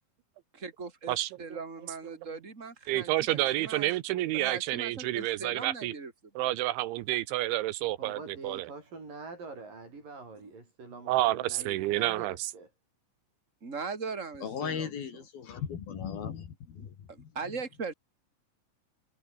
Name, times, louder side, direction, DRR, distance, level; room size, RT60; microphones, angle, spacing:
voice 1, 0.5-6.1 11.6-11.8 13.6-15.0 16.8-17.9, right 4 dB, 15° right, 4.2 m, -40 dB
voice 2, 1.1-1.6 2.9-5.9 6.4-8.7 11.1-12.5, right 17 dB, 85° right, 3.4 m, -29 dB
voice 3, 8.0-12.7, right 3 dB, 45° right, 9.0 m, -45 dB
voice 4, 14.4-17.3, left 7 dB, 55° left, 4.2 m, -37 dB
omnidirectional pair, 5.3 m